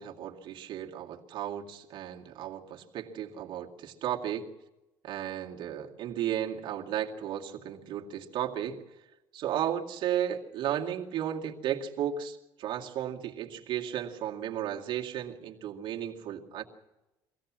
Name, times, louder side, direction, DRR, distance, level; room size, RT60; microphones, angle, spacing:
voice 1, 0.0-4.5 5.0-8.8 9.3-16.6, right 10 dB, 55° right, 0 dB, 2.2 m, -34 dB
24.0 x 17.0 x 7.4 m, 0.99 s
cardioid pair, 155°, 10 cm